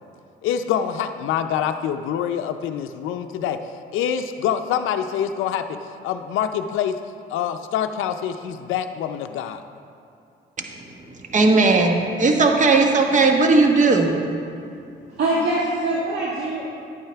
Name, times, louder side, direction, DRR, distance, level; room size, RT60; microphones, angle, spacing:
voice 1, 0.4-3.6 3.9-5.7 6.0-6.9 7.3-9.6, left 9 dB, 90° left, 8 dB, 0.5 m, -25 dB
voice 2, 11.3-14.1, right 3 dB, 40° right, 3 dB, 1.2 m, -17 dB
voice 3, 15.1-16.6, right 2 dB, 55° right, -5 dB, 1.8 m, -23 dB
11.0 x 8.9 x 3.4 m, 2.4 s
cardioid pair, 90°, 20 cm